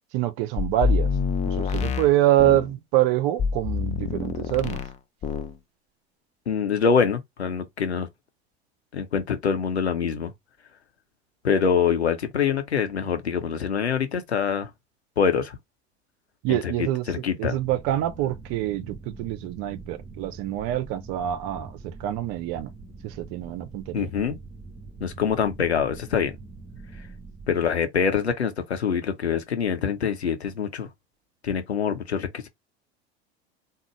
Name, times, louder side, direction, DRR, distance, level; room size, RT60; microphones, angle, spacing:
voice 1, 0.1-1.1 1.4-4.8 16.4-17.0 17.4-22.7 23.0-24.1, right 13 dB, 45° right, 0.6 m, -25 dB
sound 1, 0.6-2.7 3.4-5.0 5.2-5.6, left 6 dB, 20° left, 0.4 m, -26 dB
voice 2, 6.5-8.1 8.9-10.3 11.4-14.7 15.2-15.6 16.5-17.6 23.9-24.4 25.0-26.4 27.5-30.9 31.4-32.5, left 6 dB, 80° left, 0.8 m, -25 dB
sound 2, 17.5-27.5, right 3 dB, 10° right, 1.2 m, -44 dB
3.7 x 2.2 x 3.1 m
figure-of-eight pair, 75°, 32 cm